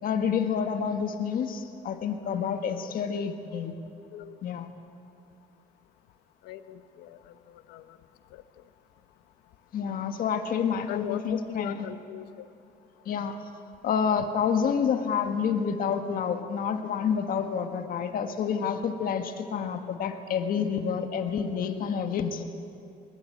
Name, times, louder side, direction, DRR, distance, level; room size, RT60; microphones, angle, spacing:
voice 1, 0.0-3.7 4.4-4.7 9.7-11.9 13.0-13.4 13.8-22.4, left 7 dB, 60° left, 6 dB, 1.7 m, -28 dB
voice 2, 6.4-8.0 8.3-8.4 10.9-12.5, left 11 dB, 85° left, 11 dB, 1.1 m, -39 dB
20.5 x 20.0 x 8.7 m, 2.6 s
cardioid pair, 110°, 17 cm